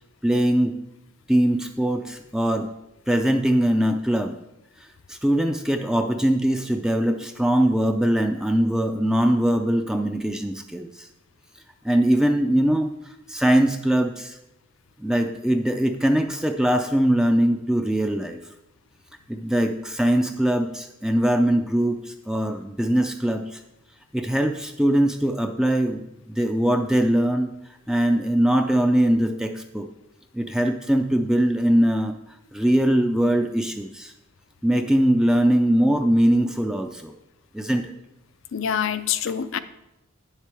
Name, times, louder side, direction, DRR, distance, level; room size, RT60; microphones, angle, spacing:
voice 1, 0.2-0.8 1.3-2.7 3.1-4.4 5.1-11.1 11.8-12.9 13.3-14.4 15.0-18.4 19.3-23.6 24.1-27.5 27.9-29.9 30.3-32.2 32.5-34.1 34.6-37.1 37.5-37.9, right 1 dB, 5° right, 5 dB, 0.3 m, -21 dB
voice 2, 38.5-39.6, left 8 dB, 65° left, 13 dB, 0.4 m, -25 dB
9.8 x 7.4 x 3.4 m, 0.90 s
head